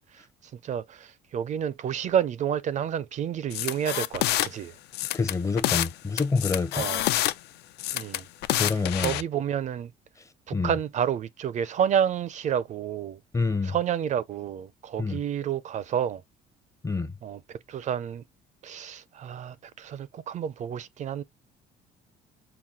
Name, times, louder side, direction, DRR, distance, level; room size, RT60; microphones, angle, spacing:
voice 1, 0.1-4.7 6.7-7.0 7.9-8.3 8.6-9.9 10.5-13.2 13.6-16.2 17.2-18.2 18.6-21.2, right 9 dB, 45° right, 0.4 m, -30 dB
sound 1, 3.5-4.5 4.9-5.9 6.2-7.3 7.8-9.2, left 14 dB, 75° left, 0.4 m, -27 dB
voice 2, 5.1-6.9 8.5-9.2 10.5-10.7 13.3-13.8 15.0-15.2 16.8-17.1, left 4 dB, 20° left, 0.6 m, -27 dB
5.8 x 2.3 x 3.5 m
cardioid pair, 110°, 17 cm